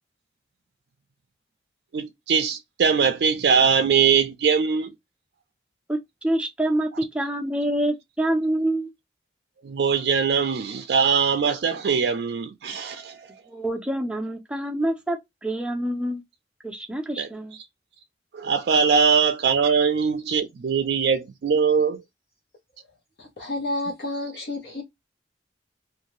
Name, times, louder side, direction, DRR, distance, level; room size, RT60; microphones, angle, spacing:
voice 1, 1.9-4.9 9.6-13.4 17.2-17.3 18.3-22.0, right 6 dB, 70° right, 0.4 m, -21 dB
voice 2, 5.9-8.9 13.5-16.2 16.6-17.6, right 1 dB, 5° right, 0.5 m, -26 dB
voice 3, 23.2-24.8, left 2 dB, 65° left, 0.7 m, -30 dB
2.6 x 2.2 x 3.0 m
head